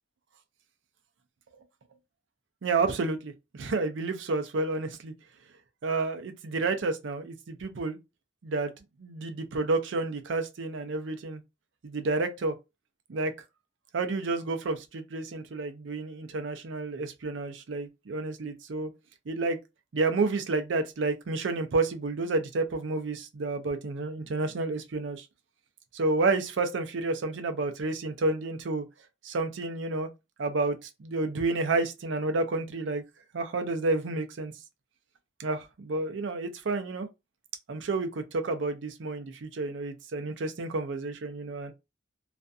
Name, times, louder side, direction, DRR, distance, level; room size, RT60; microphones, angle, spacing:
voice 1, 2.6-5.1 5.8-8.0 8.4-8.7 9.0-11.4 11.8-12.5 13.1-13.3 13.9-18.9 19.3-19.6 19.9-25.3 25.9-28.9 29.2-30.1 30.4-33.0 33.3-34.5 35.4-37.1 37.7-41.7, right 3 dB, 90° right, 0.5 m, -30 dB
2.5 x 2.2 x 2.5 m
head